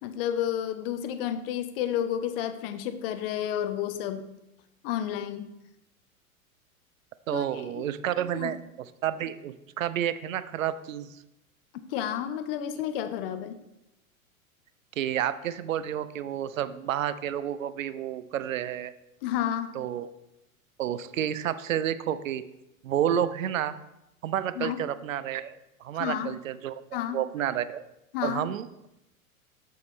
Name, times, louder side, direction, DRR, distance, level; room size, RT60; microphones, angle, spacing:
voice 1, 0.0-4.3 4.8-5.5 7.3-7.8 8.3-8.5 11.7-13.6 19.2-19.7 24.6-24.8 26.0-26.3 26.9-27.2 28.1-28.5, left 10 dB, 45° left, 10 dB, 0.6 m, -31 dB
voice 2, 7.3-11.2 15.0-18.9 19.7-20.1 20.8-22.4 22.8-23.8 24.2-27.8 28.2-28.7, right 10 dB, 70° right, 14 dB, 0.5 m, -30 dB
6.9 x 6.5 x 3.2 m, 0.88 s
figure-of-eight pair, 95°, 42 cm